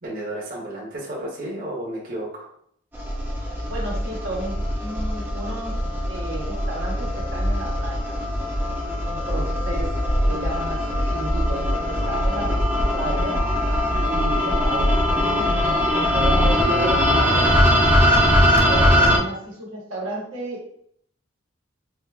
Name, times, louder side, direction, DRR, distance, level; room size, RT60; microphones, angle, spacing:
voice 1, 0.0-2.5 9.3-9.8, right 1 dB, 45° right, -5 dB, 1.0 m, -33 dB
sound 1, 2.9-19.2, equal, 10° right, 0.6 m, -21 dB
voice 2, 3.7-5.8 6.1-8.2 9.1-13.5 13.9-17.6 18.2-20.7, right 2 dB, 85° right, -3 dB, 1.2 m, -33 dB
4.5 x 2.4 x 2.3 m, 0.65 s
head